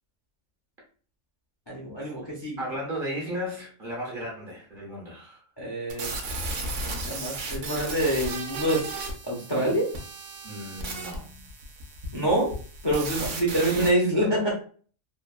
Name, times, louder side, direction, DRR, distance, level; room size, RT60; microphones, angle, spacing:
voice 1, 1.7-2.6 5.6-6.1 7.0-8.9 9.2-9.9 12.1-12.5 12.8-14.5, right 1 dB, 25° left, -5 dB, 0.5 m, -26 dB
voice 2, 2.6-5.4 10.4-11.5 13.1-13.3, equal, 45° right, -2 dB, 0.9 m, -35 dB
sound 1, 5.9-13.9, right 2 dB, 65° right, 0.9 m, -35 dB
3.0 x 2.2 x 2.3 m, 0.42 s
omnidirectional pair, 1.5 m